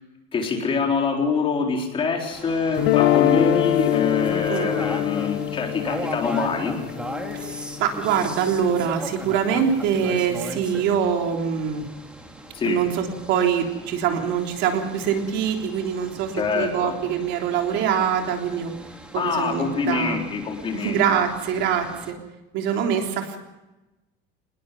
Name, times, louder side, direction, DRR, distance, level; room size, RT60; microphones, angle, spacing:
voice 1, 0.3-6.8 12.5-12.8 16.3-17.0 19.2-21.0, left 5 dB, 25° left, 1 dB, 4.0 m, -25 dB
sound 1, 2.3-22.1, right 1 dB, 5° right, 2.3 m, -38 dB
sound 2, 2.8-8.9, left 14 dB, 65° left, 0.9 m, -24 dB
voice 2, 7.4-11.9 12.6-18.7 19.1-20.2 20.7-22.2 22.5-23.4, right 8 dB, 60° right, 3 dB, 3.5 m, -24 dB
25.5 x 20.5 x 5.3 m, 1.0 s
cardioid pair, 175°, 21 cm